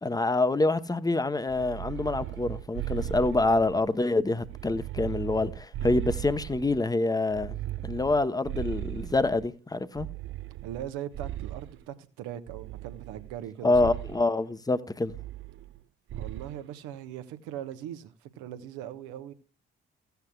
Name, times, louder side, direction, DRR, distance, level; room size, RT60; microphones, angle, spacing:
voice 1, 0.0-7.5 7.8-10.1 13.6-15.1, left 2 dB, 10° left, 0.9 m, -26 dB
sound 1, 1.5-3.9 4.4-6.8 7.3-9.5 10.0-11.8 12.5-13.4 13.7-14.2 15.1-15.8 16.1-16.6, right 13 dB, 40° right, 0.4 m, -37 dB
voice 2, 10.6-13.9 16.1-19.3, right 11 dB, 70° right, 1.0 m, -40 dB
16.0 x 8.1 x 2.3 m
figure-of-eight pair, 40°, 32 cm